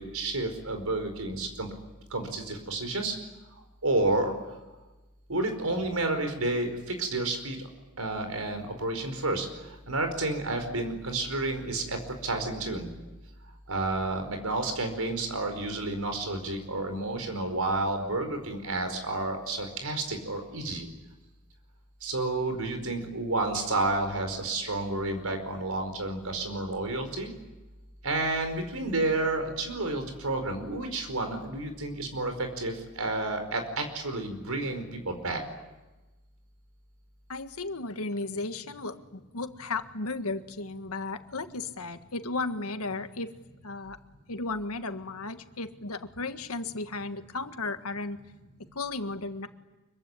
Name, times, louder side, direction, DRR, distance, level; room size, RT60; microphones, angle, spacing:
voice 1, 0.0-1.7 2.1-3.1 3.8-4.3 5.3-7.6 8.0-9.5 9.9-12.0 12.2-12.9 13.7-20.9 22.0-27.3 28.0-35.4, right 2 dB, 80° right, 6 dB, 4.9 m, -30 dB
voice 2, 37.3-43.3 43.6-44.0 44.3-48.2 48.7-49.5, left 3 dB, 85° left, 8 dB, 1.7 m, -34 dB
25.0 x 23.5 x 9.8 m, 1.1 s
head